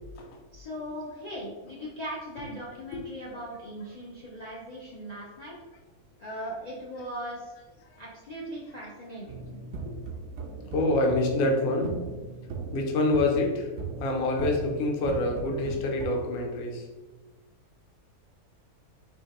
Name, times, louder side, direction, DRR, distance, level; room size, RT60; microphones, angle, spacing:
voice 1, 0.5-5.6 6.2-7.5 8.0-9.6, equal, 90° left, -5 dB, 0.3 m, -39 dB
sound 1, 9.3-16.1, right 4 dB, 65° right, 0.6 m, -38 dB
voice 2, 10.7-11.9 12.7-13.7 14.0-16.8, left 2 dB, 55° left, 1 dB, 0.7 m, -26 dB
4.3 x 2.9 x 2.9 m, 1.2 s
omnidirectional pair, 1.6 m